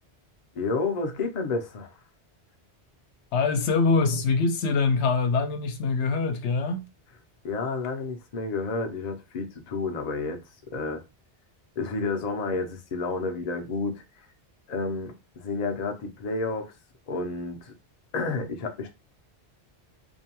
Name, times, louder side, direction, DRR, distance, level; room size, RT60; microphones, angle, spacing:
voice 1, 0.6-1.9 7.4-10.4 10.7-11.0 11.8-14.3 14.7-16.7 17.1-17.7 18.1-18.9, left 3 dB, 50° left, 0.6 m, -30 dB
voice 2, 3.3-6.9, left 4 dB, 85° left, 0.9 m, -24 dB
2.6 x 2.2 x 2.8 m
omnidirectional pair, 1.1 m